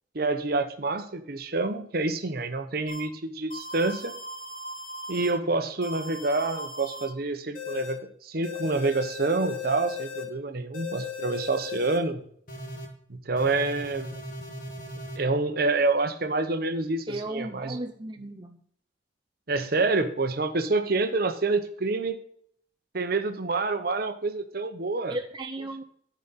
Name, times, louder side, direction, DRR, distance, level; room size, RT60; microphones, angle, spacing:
voice 1, 0.1-4.1 5.1-12.2 13.1-14.1 15.2-17.8 18.2-18.3 19.5-22.2 22.9-25.1, right 3 dB, 55° right, 8 dB, 0.9 m, -27 dB
sound 1, 2.9-3.0 3.5-5.3 5.8-7.1 7.6-7.9 8.4-10.2 10.7-12.0 12.5-12.9 13.4-15.2, left 3 dB, 50° left, 1.8 m, -37 dB
voice 2, 17.1-18.6 25.1-25.8, right 2 dB, 25° right, 3 dB, 0.5 m, -35 dB
12.0 x 5.1 x 4.1 m, 0.63 s
head